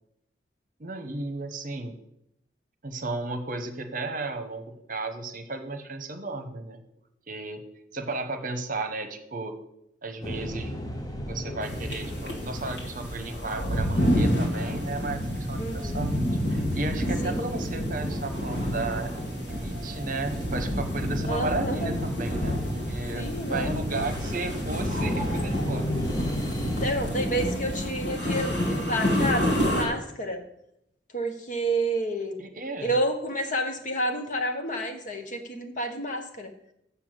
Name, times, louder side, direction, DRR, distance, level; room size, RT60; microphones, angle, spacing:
voice 1, 0.8-2.0 2.8-6.8 7.3-7.6 7.9-9.6 10.0-10.8 11.3-19.1 19.4-22.6 22.9-26.0 32.4-32.9, right 2 dB, 45° right, 7 dB, 1.0 m, -34 dB
sound 1, 10.2-17.8 18.1-19.1 19.5-26.9, equal, 20° left, 1.0 m, -37 dB
sound 2, 11.6-29.8, equal, 70° left, 2.8 m, -29 dB
sound 3, 13.0-28.5, right 1 dB, 25° right, 1.6 m, -42 dB
voice 2, 15.5-16.1 17.2-17.4 21.3-21.9 23.1-23.7 26.5-30.4 31.1-32.4 32.8-36.5, right 1 dB, 40° left, 4 dB, 1.2 m, -30 dB
7.0 x 6.9 x 7.8 m, 0.79 s
head